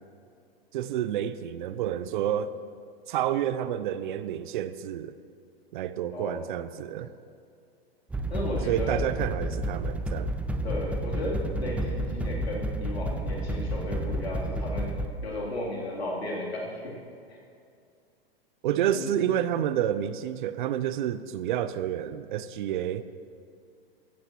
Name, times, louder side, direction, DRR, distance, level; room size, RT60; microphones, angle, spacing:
voice 1, 0.7-2.6 3.1-5.1 5.7-7.1 8.7-10.4 18.6-23.1, right 10 dB, 55° right, 0.7 m, -29 dB
sound 1, 8.1-15.1, right 1 dB, 5° right, 0.4 m, -31 dB
voice 2, 8.3-9.0 10.6-14.9 15.2-16.9 17.3-17.4 19.0-19.1, left 1 dB, 90° left, 3.3 m, -34 dB
15.0 x 14.5 x 3.0 m
hypercardioid pair, 110°, 31 cm